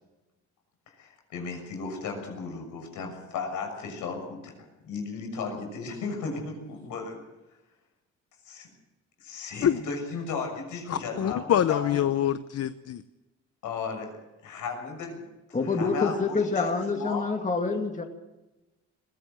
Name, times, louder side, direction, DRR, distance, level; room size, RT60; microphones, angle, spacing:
voice 1, 0.9-7.2 8.4-8.7 9.2-12.0 13.6-16.7 16.9-17.3, left 4 dB, 85° left, 3 dB, 6.8 m, -35 dB
voice 2, 10.9-13.0, left 10 dB, 55° left, 12 dB, 0.8 m, -25 dB
voice 3, 15.5-18.0, left 4 dB, 25° left, 4 dB, 2.6 m, -27 dB
22.0 x 16.0 x 7.8 m, 1.0 s
cardioid pair, 90°, 30 cm